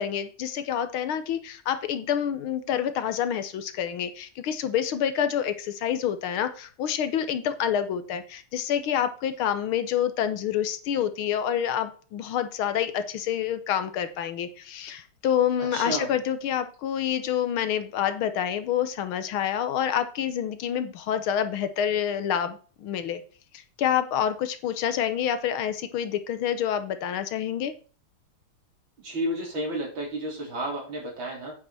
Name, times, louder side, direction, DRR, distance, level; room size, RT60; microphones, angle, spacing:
voice 1, 0.0-23.2 23.5-27.7, left 9 dB, 75° left, 12 dB, 1.8 m, -27 dB
voice 2, 15.6-16.1 29.0-31.5, right 1 dB, 60° right, 0 dB, 4.5 m, -31 dB
8.9 x 7.4 x 4.2 m, 0.39 s
omnidirectional pair, 2.4 m